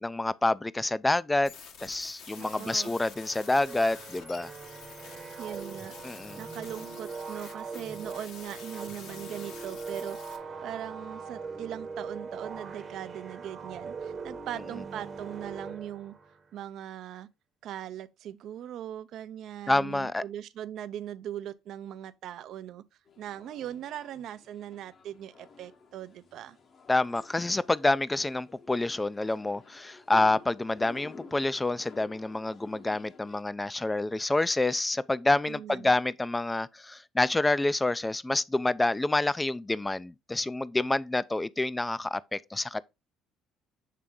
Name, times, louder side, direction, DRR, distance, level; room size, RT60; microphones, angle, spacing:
voice 1, 0.0-1.5 1.8-4.5 6.0-6.4 19.7-20.2 26.9-42.8, left 2 dB, 15° left, 0.4 m, -28 dB
sound 1, 1.4-10.4, left 6 dB, 70° left, 1.3 m, -48 dB
sound 2, 2.3-16.4, right 4 dB, 35° right, 0.9 m, -41 dB
voice 2, 2.4-3.0 5.4-16.1 16.5-17.3 17.6-22.8 23.2-26.6 35.5-35.9, right 11 dB, 65° right, 0.5 m, -40 dB
sound 3, 23.1-33.4, left 4 dB, 45° left, 0.9 m, -52 dB
7.4 x 3.4 x 3.7 m
supercardioid pair, 90°, 0 cm